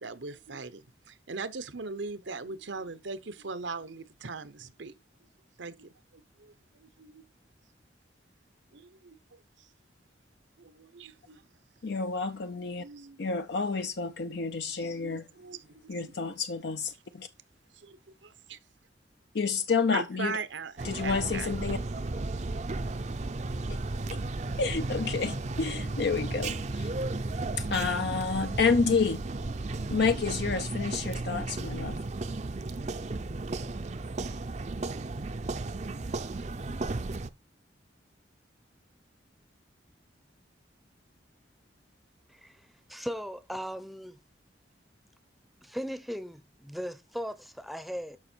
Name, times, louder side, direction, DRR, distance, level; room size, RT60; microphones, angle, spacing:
voice 1, 0.0-4.9 5.6-6.5 6.8-7.2 8.7-9.2 9.6-9.7 10.6-11.4 12.8-13.3 15.0-16.3 17.7-18.6 19.9-21.5, right 4 dB, 85° right, 1.0 m, -40 dB
voice 2, 11.8-12.8 13.2-15.3 15.9-17.3 19.3-20.4 20.8-21.8 24.1-24.2 24.6-26.9 27.6-29.6 29.9-32.0, left 4 dB, 60° left, 0.5 m, -29 dB
sound 1, 20.8-37.3, right 2 dB, 40° right, 0.6 m, -34 dB
voice 3, 42.9-44.2 45.6-48.2, equal, ahead, 0.7 m, -37 dB
12.0 x 5.9 x 4.5 m
head